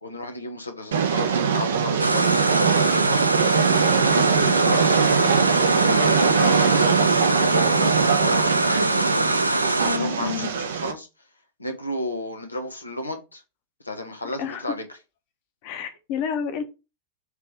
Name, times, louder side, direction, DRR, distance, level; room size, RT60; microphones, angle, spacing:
voice 1, 0.0-3.2 4.5-5.4 5.7-9.4 9.9-11.1 11.6-13.4 13.8-14.8, left 1 dB, 80° left, 1.3 m, -32 dB
Train, 0.9-10.9, right 6 dB, 65° right, 1.0 m, -22 dB
sound 1, 2.0-10.0, right 1 dB, 85° right, 0.4 m, -23 dB
voice 2, 4.2-4.5 4.9-5.3 9.8-10.5 14.4-14.7 15.6-16.6, left 7 dB, 45° left, 1.4 m, -31 dB
6.7 x 3.4 x 4.7 m
figure-of-eight pair, 90°, 0 cm